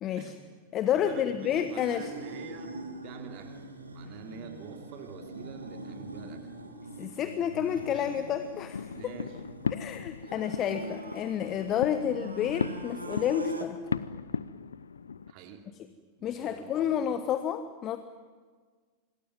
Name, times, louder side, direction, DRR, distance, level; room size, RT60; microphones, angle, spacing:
voice 1, 0.0-0.3 0.7-2.1 7.0-9.1 9.7-13.8 16.2-18.0, left 9 dB, 30° left, 10 dB, 1.2 m, -30 dB
voice 2, 0.9-3.7 3.9-6.5 8.9-9.4 15.3-15.7 16.2-16.9, right 6 dB, 40° right, 4 dB, 3.1 m, -45 dB
sound 1, 1.4-13.7, right 1 dB, 80° right, 2.7 m, -42 dB
sound 2, 7.7-15.3, left 6 dB, 70° left, 0.7 m, -37 dB
26.0 x 21.0 x 9.6 m, 1.6 s
figure-of-eight pair, 90°, 0 cm